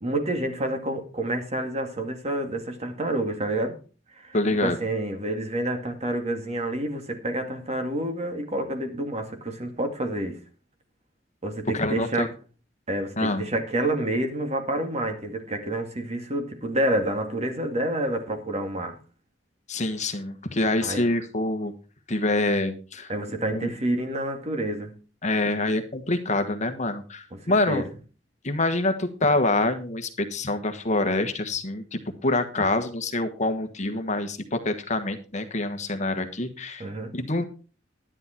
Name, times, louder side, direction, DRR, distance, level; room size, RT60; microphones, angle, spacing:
voice 1, 0.0-3.8 4.2-4.4 4.6-10.4 11.4-12.3 12.9-19.0 20.8-21.1 23.1-25.0 27.3-27.4 27.7-27.9 36.8-37.1, right 1 dB, 35° right, 2.1 m, -28 dB
voice 2, 4.3-4.8 11.7-12.3 13.2-13.4 19.7-21.7 22.1-23.1 23.5-23.7 25.2-27.8 28.4-36.9 37.1-37.4, left 2 dB, 40° left, 1.4 m, -26 dB
11.0 x 11.0 x 4.4 m
head